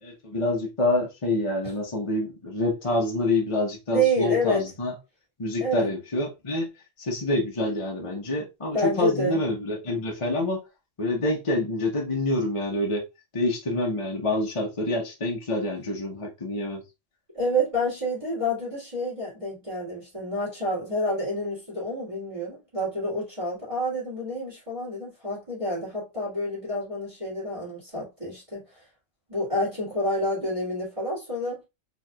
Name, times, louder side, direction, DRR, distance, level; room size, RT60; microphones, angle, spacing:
voice 1, 0.0-4.9 5.4-6.7 7.0-10.6 11.0-13.0 13.3-16.8, left 2 dB, 30° left, 0.9 m, -27 dB
voice 2, 3.9-4.7 5.6-6.0 8.7-9.4 17.3-28.8 29.3-31.6, equal, 25° right, 2.6 m, -28 dB
4.6 x 3.4 x 2.3 m
omnidirectional pair, 1.3 m